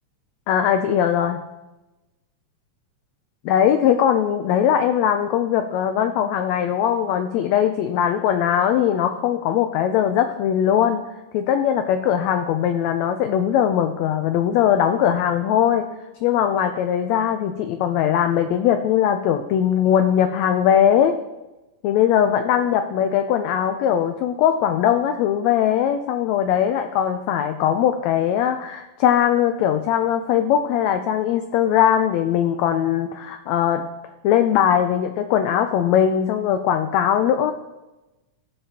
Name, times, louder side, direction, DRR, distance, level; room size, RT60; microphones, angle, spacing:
voice 1, 0.5-1.4 3.4-11.0 11.3-15.9 16.2-21.2 21.8-33.8 34.2-37.5, left 9 dB, 80° left, 7 dB, 1.6 m, -20 dB
16.0 x 6.8 x 2.8 m, 1.0 s
omnidirectional pair, 3.5 m